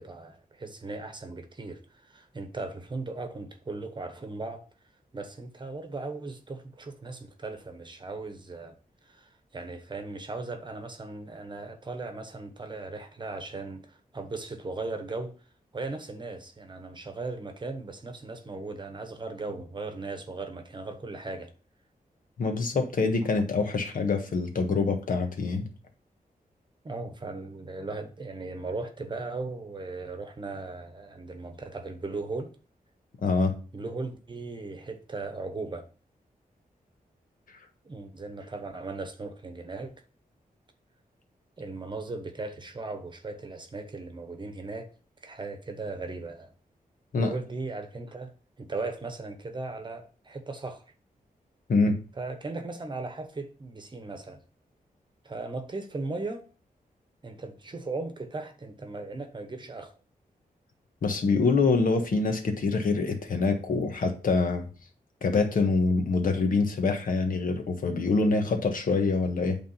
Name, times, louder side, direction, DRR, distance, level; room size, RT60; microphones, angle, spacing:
voice 1, 0.0-4.6 5.1-8.8 9.0-15.3 15.7-21.5 26.8-32.5 33.7-35.8 37.8-39.9 41.6-44.9 45.2-46.5 47.2-48.3 48.6-50.8 52.2-54.4 55.2-56.5 57.2-59.9, right 3 dB, 30° right, 1.0 m, -37 dB
voice 2, 22.4-25.7 33.2-33.5 47.1-47.3 51.7-52.0 61.0-64.7 65.2-69.6, left 4 dB, 65° left, 1.3 m, -25 dB
8.6 x 3.6 x 5.5 m
wide cardioid pair, 155°, 15 cm